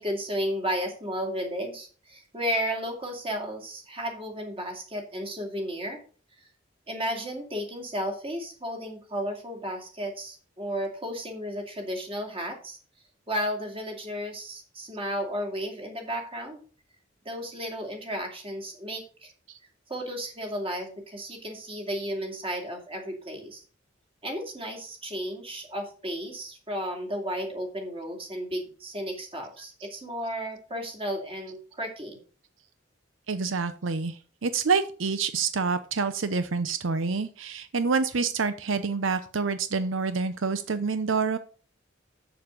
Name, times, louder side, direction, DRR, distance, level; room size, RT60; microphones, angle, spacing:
voice 1, 0.0-6.0 6.9-12.8 13.3-16.6 17.2-19.3 19.9-23.6 24.2-32.2, equal, 30° right, 3 dB, 2.5 m, -33 dB
voice 2, 33.3-41.4, right 4 dB, 90° right, 11 dB, 0.7 m, -27 dB
7.3 x 7.0 x 5.2 m, 0.39 s
head